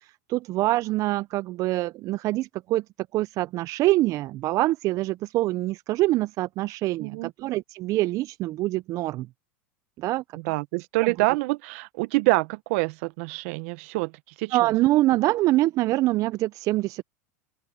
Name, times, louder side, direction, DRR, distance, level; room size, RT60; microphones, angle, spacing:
voice 1, 0.3-2.8 3.1-9.3 10.0-10.2 11.0-11.1 14.5-17.0, right 17 dB, 45° right, 0.4 m, -25 dB
voice 2, 7.0-7.3 10.3-14.1 14.4-14.6, right 24 dB, 65° right, 1.0 m, -26 dB
open air
hypercardioid pair, 105°, 8 cm